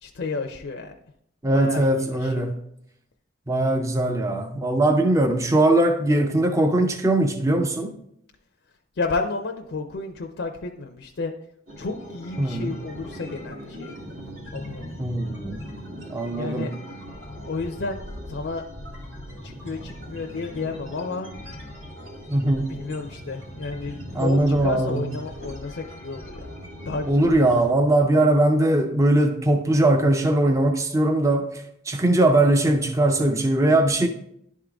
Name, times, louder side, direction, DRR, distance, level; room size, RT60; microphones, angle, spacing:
voice 1, 0.0-0.9 1.5-2.6 9.0-11.3 11.8-14.2 14.5-14.9 16.4-16.7 17.5-18.0 18.3-18.6 19.4-21.3 22.7-26.5 26.9-27.3, left 3 dB, 60° left, 0.5 m, -31 dB
voice 2, 1.4-2.5 3.5-7.9 12.4-12.8 15.0-15.6 16.1-16.7 22.3-22.7 24.1-25.1 27.1-34.1, right 1 dB, 15° right, 0.4 m, -20 dB
sound 1, 11.7-27.7, equal, 80° right, 1.8 m, -39 dB
11.0 x 3.7 x 3.4 m
head